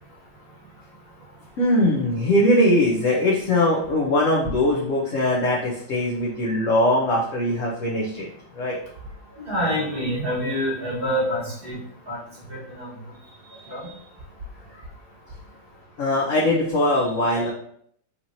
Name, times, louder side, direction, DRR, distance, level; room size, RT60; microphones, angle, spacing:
voice 1, 1.6-8.8 13.2-14.0 16.0-17.5, left 1 dB, 75° left, -4 dB, 0.7 m, -21 dB
voice 2, 9.4-11.8 12.1-12.2 12.5-12.9 13.7-13.8, equal, 30° right, -8 dB, 1.6 m, -26 dB
4.1 x 2.9 x 2.7 m, 0.65 s
omnidirectional pair, 2.2 m